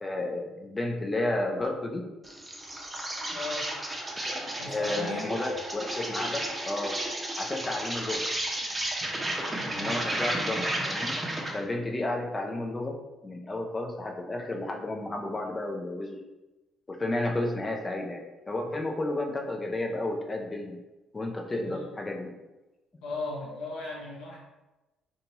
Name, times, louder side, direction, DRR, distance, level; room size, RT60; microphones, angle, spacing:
voice 1, 0.0-2.1 4.2-7.0 7.4-8.3 9.7-11.2 11.5-13.0 13.2-16.2 16.9-18.2 18.5-20.8 21.1-22.3, left 2 dB, 30° left, 2 dB, 0.5 m, -32 dB
Insect, 2.2-11.6, right 1 dB, 20° right, 0.7 m, -33 dB
voice 2, 3.3-3.7 4.6-5.3 9.5-9.9 21.6-21.8 23.0-24.4, left 2 dB, 75° left, -4 dB, 0.6 m, -37 dB
2.6 x 2.3 x 2.9 m, 1.0 s
hypercardioid pair, 50°, 0 cm